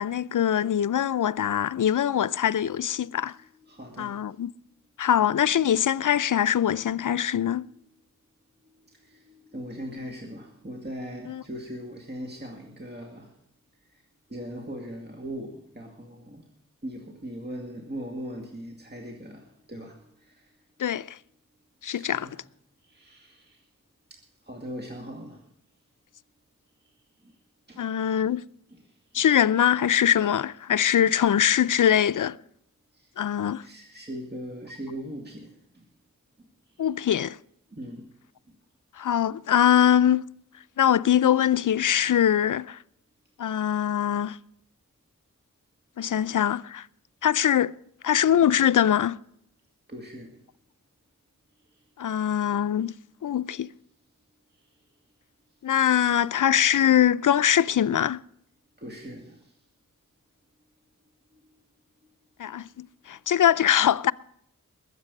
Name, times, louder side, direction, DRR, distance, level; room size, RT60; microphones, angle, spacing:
voice 1, 0.0-3.4 4.0-4.5 5.0-7.7 11.3-11.4 20.8-21.2 21.8-22.3 27.8-28.4 29.1-32.3 33.2-33.6 36.8-37.4 39.0-40.3 40.8-42.8 43.4-44.4 46.0-46.9 47.2-47.7 48.0-49.2 52.0-52.9 53.2-53.7 55.6-58.2 62.4-64.1, left 10 dB, 65° left, 0.5 m, -22 dB
voice 2, 3.1-4.3 7.6-7.8 8.6-13.3 13.9-14.0 14.3-16.5 16.8-20.5 21.9-22.4 22.8-23.7 24.1-25.5 26.8-26.9 27.2-27.4 27.7-27.9 28.4-29.3 32.9-33.1 33.6-35.9 36.4-36.9 37.7-38.1 38.5-38.6 49.9-50.4 51.7-51.8 54.5-54.7 58.8-59.6 61.3-61.6 62.0-62.1 62.5-62.6, equal, 30° right, 2.2 m, -40 dB
21.0 x 8.1 x 5.3 m
wide cardioid pair, 50°, 34 cm